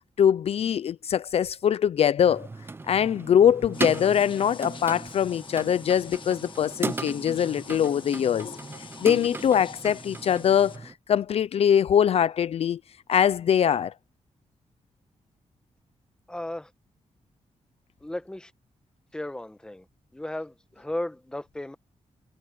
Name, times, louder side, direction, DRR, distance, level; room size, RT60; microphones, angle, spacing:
voice 1, 0.2-2.5 2.9-8.5 9.0-12.8 13.1-13.9, left 9 dB, 60° left, 0.4 m, -22 dB
sound 1, 2.2-10.9, right 3 dB, 20° right, 0.5 m, -37 dB
sound 2, 3.7-10.8, left 6 dB, 45° left, 1.3 m, -46 dB
voice 2, 16.3-16.7 18.0-18.5 19.1-19.8 20.1-21.8, left 1 dB, 5° left, 1.0 m, -35 dB
wide cardioid pair, 180°, 12 cm